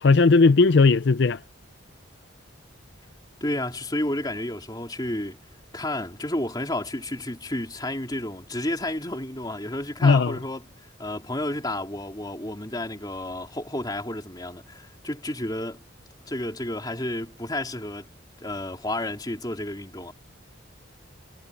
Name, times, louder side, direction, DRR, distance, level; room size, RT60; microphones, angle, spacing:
voice 1, 0.0-1.4 10.0-10.3, left 4 dB, 60° left, 0.5 m, -17 dB
voice 2, 3.4-5.4 5.7-10.7 11.0-15.8 16.3-18.1 18.4-20.1, left 1 dB, 20° left, 3.7 m, -31 dB
head